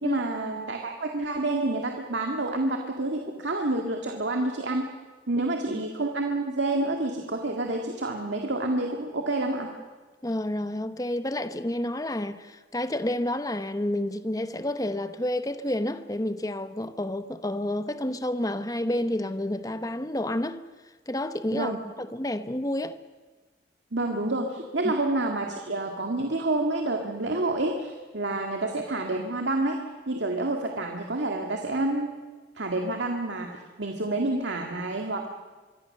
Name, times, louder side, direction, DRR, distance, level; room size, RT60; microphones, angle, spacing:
voice 1, 0.0-4.9 5.3-9.7 21.5-21.8 23.9-32.1 32.6-35.3, right 2 dB, 85° right, 2.0 m, -28 dB
voice 2, 10.2-20.6 21.1-23.0 24.8-24.9, left 1 dB, 20° left, 0.9 m, -30 dB
24.5 x 24.0 x 6.7 m
head